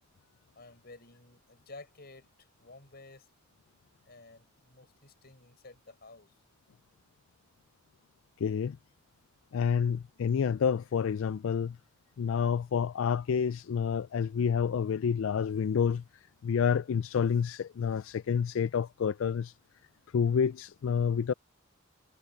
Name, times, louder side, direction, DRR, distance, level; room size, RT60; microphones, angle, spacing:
voice 1, 0.6-3.3 4.0-6.4, left 3 dB, 50° left, 5.5 m, -52 dB
voice 2, 8.4-8.8 9.5-11.8 12.2-16.0 16.4-19.5 20.1-21.3, left 7 dB, 75° left, 0.4 m, -28 dB
head